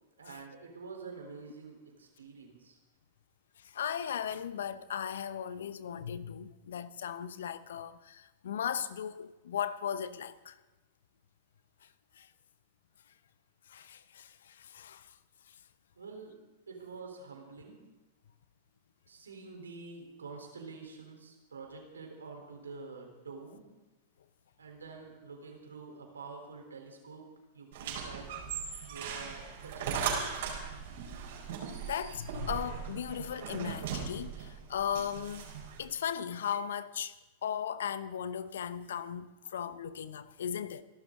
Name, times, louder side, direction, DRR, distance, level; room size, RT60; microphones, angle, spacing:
voice 1, 0.2-2.8 16.0-16.4 16.7-17.8 19.1-23.6 24.6-27.3 27.5-28.3 28.9-30.5, right 4 dB, 80° right, 3.7 m, -47 dB
voice 2, 3.6-10.6 11.8-11.9 12.1-12.3 13.7-15.2 15.5-15.6 31.8-35.5 35.8-37.2 37.4-40.8, left 8 dB, 70° left, 0.8 m, -37 dB
sound 1, 27.7-35.8, right 7 dB, 60° right, 4.7 m, -38 dB
27.0 x 12.0 x 3.8 m
figure-of-eight pair, 95°, 0 cm